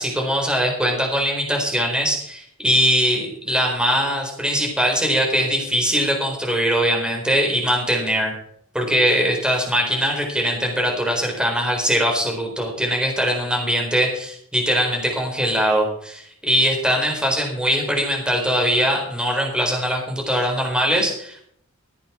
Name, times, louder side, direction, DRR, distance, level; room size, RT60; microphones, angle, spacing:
voice 1, 0.0-8.3 8.7-21.4, equal, 5° right, 0 dB, 4.3 m, -21 dB
15.5 x 8.6 x 6.1 m, 0.67 s
head